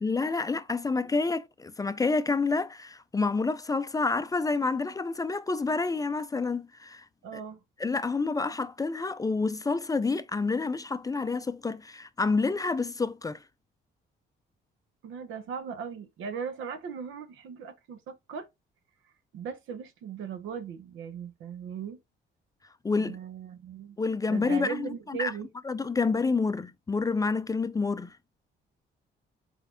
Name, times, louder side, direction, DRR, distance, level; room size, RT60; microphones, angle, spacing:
voice 1, 0.0-7.0 7.3-7.4 7.8-13.4 22.8-23.2 24.0-25.3 25.6-28.1, left 4 dB, 20° left, 0.3 m, -28 dB
voice 2, 7.2-7.6 15.0-18.5 19.3-22.0 22.9-24.0 24.3-25.5, right 7 dB, 85° right, 0.8 m, -38 dB
4.5 x 4.0 x 2.6 m
cardioid pair, 90°, 20 cm